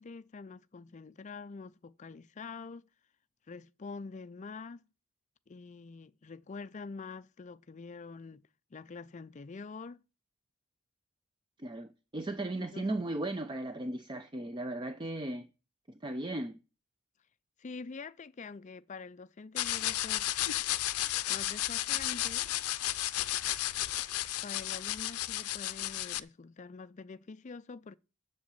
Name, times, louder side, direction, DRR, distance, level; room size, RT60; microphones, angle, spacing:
voice 1, 0.0-2.9 3.5-4.8 5.5-10.0 12.6-12.8 17.6-20.3 21.3-22.5 24.4-28.0, left 4 dB, 35° left, 0.4 m, -46 dB
voice 2, 11.6-15.5 16.0-16.6, right 1 dB, 20° right, 0.5 m, -36 dB
sound 1, 19.6-26.2, left 14 dB, 80° left, 0.5 m, -33 dB
7.7 x 7.4 x 6.9 m
head